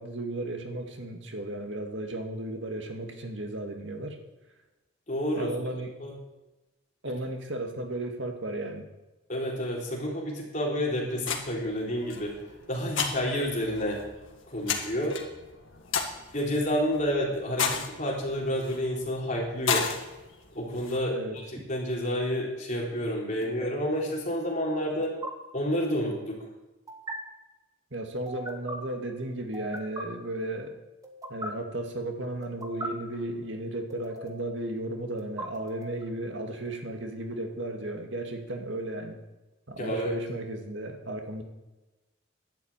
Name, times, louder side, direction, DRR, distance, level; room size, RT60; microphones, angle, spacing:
voice 1, 0.0-4.2 5.4-5.9 7.0-8.9 21.1-21.4 27.9-30.7 31.3-39.2 39.7-41.4, right 1 dB, 60° right, 4 dB, 2.2 m, -34 dB
voice 2, 5.1-5.5 6.0-6.1 9.3-12.3 12.7-14.0 14.5-15.2 16.3-19.9 20.5-21.4 21.7-25.1 25.5-26.4 39.8-40.2, equal, 35° left, -2 dB, 4.0 m, -29 dB
sound 1, 11.2-21.0, left 6 dB, 70° left, 2.1 m, -34 dB
sound 2, 21.4-21.6 23.4-23.7 25.0-25.3 26.9-27.2 28.3-28.8 29.5-30.0 31.0-31.5 32.4-32.9 33.9-34.5 35.2-36.0, right 1 dB, 15° right, 1.6 m, -39 dB
11.5 x 11.0 x 9.0 m, 1.1 s
head